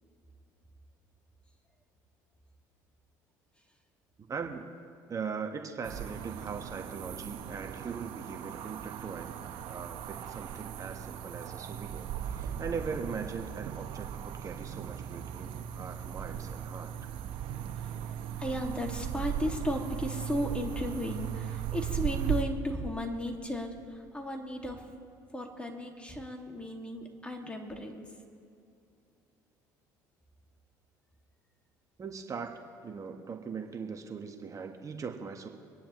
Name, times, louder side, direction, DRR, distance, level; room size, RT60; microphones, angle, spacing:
voice 1, 4.3-4.7 5.1-9.4 9.6-16.9 32.0-32.5 32.8-35.5, right 5 dB, 35° right, 3 dB, 1.3 m, -40 dB
sound 1, 5.8-22.4, right 9 dB, 70° right, 1.0 m, -38 dB
voice 2, 18.4-24.8 25.3-28.0, left 1 dB, 10° left, 2 dB, 2.2 m, -35 dB
25.5 x 10.0 x 3.1 m, 2.6 s
hypercardioid pair, 70°, 9 cm